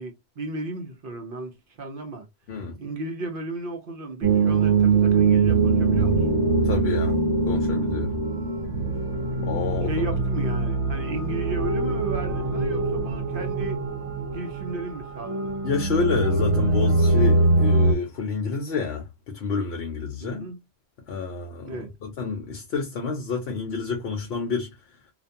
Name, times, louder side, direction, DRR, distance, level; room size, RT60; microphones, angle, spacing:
voice 1, 0.0-2.3 2.8-6.2 9.8-13.8 14.3-15.5 20.2-20.6 21.6-21.9, right 2 dB, 55° right, 0.7 m, -34 dB
sound 1, 4.2-17.9, right 3 dB, 75° right, 1.0 m, -23 dB
voice 2, 6.6-7.2 7.5-8.2 9.4-10.1 15.6-20.4 21.1-24.7, left 5 dB, 65° left, 0.8 m, -29 dB
2.5 x 2.2 x 2.6 m
omnidirectional pair, 1.2 m